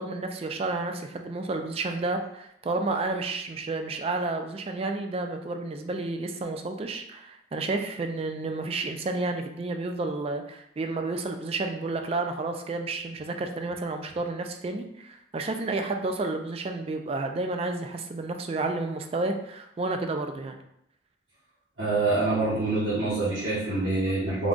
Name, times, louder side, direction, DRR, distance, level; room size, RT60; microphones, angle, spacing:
voice 1, 0.0-20.6, right 3 dB, 30° right, 5 dB, 0.3 m, -31 dB
voice 2, 21.8-24.5, right 3 dB, 75° right, -11 dB, 1.3 m, -25 dB
3.6 x 2.3 x 3.8 m, 0.76 s
head